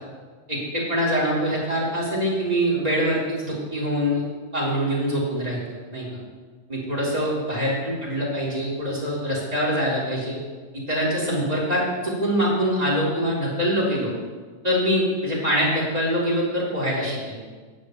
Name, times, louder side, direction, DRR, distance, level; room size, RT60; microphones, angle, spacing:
voice 1, 0.5-4.2 4.5-5.6 5.9-6.1 6.7-10.4 10.7-14.1 14.6-17.4, equal, 10° right, -5 dB, 3.2 m, -24 dB
17.0 x 10.5 x 3.3 m, 1.5 s
omnidirectional pair, 4.7 m